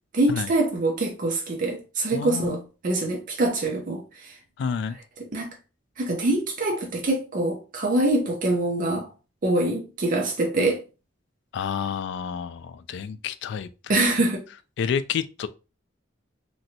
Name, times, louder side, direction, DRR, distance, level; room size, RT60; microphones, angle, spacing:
voice 1, 0.1-4.3 5.3-5.5 6.0-9.1 9.4-10.8 13.9-14.4, right 2 dB, 45° right, 0.6 m, -24 dB
voice 2, 2.1-2.6 4.6-5.0 11.5-13.9 14.8-15.5, left 7 dB, 65° left, 0.3 m, -29 dB
3.0 x 2.6 x 2.7 m
head